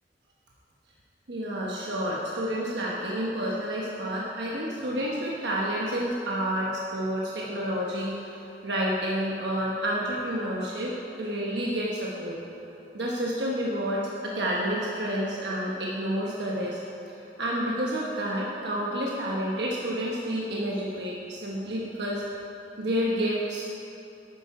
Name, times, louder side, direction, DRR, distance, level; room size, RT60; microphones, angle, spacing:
voice 1, 1.3-12.4 12.9-16.8 17.1-22.2 22.8-23.9, equal, 65° right, -4 dB, 1.1 m, -29 dB
11.5 x 9.1 x 4.9 m, 2.9 s
head